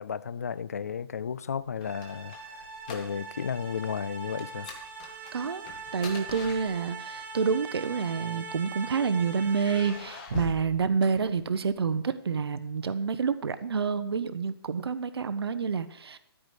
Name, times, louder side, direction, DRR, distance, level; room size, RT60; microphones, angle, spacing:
voice 1, 0.0-4.7, left 7 dB, 35° left, 0.4 m, -34 dB
sound 1, 1.6-3.5 3.7-4.0 4.4-7.2 8.0-8.9 9.5-11.8, left 4 dB, 20° left, 1.1 m, -42 dB
sound 2, 1.8-10.2, right 4 dB, 25° right, 1.5 m, -42 dB
voice 2, 5.3-5.6 5.9-16.2, right 5 dB, 70° right, 0.8 m, -28 dB
13.5 x 5.0 x 8.1 m
hypercardioid pair, 175°, 14 cm